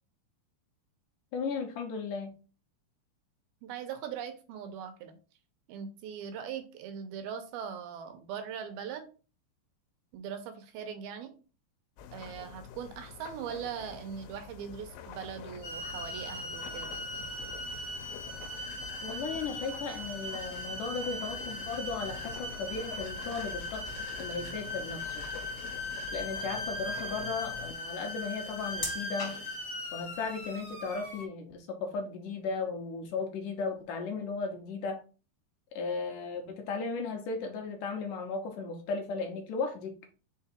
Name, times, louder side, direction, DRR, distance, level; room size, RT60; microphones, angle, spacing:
voice 1, 1.3-2.3 19.0-23.8 24.2-25.2 26.1-29.4 29.9-35.0 35.7-39.9, left 4 dB, 65° left, 3 dB, 2.3 m, -36 dB
voice 2, 3.6-5.2 5.7-9.1 10.1-11.3 12.1-16.9, right 8 dB, 80° right, 8 dB, 2.7 m, -40 dB
sound 1, 12.0-27.7, left 7 dB, 90° left, 2.7 m, -47 dB
sound 2, 15.6-31.2, left 1 dB, 25° left, 2.9 m, -39 dB
5.8 x 4.2 x 4.4 m, 0.35 s
omnidirectional pair, 4.5 m